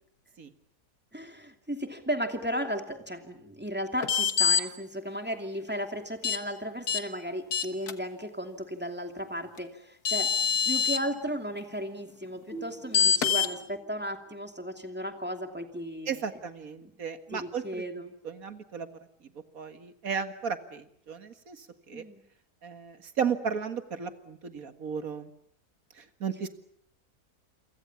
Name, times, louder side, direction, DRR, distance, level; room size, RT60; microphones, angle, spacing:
voice 1, 1.1-10.3 10.7-16.4 17.3-18.1 21.9-22.2, equal, 5° right, 5 dB, 2.6 m, -35 dB
sound 1, 4.0-4.6 6.2-6.4 6.9-7.0 7.5-7.9 9.6-9.7 10.0-11.0 12.9-13.5, left 7 dB, 75° left, 2.0 m, -24 dB
sound 2, 12.5-15.9, right 4 dB, 35° left, 6.3 m, -48 dB
voice 2, 16.1-17.8 18.2-18.9 19.5-22.0 22.6-25.3 26.2-26.5, right 6 dB, 65° right, 9 dB, 2.2 m, -34 dB
29.0 x 23.5 x 7.2 m, 0.67 s
omnidirectional pair, 1.6 m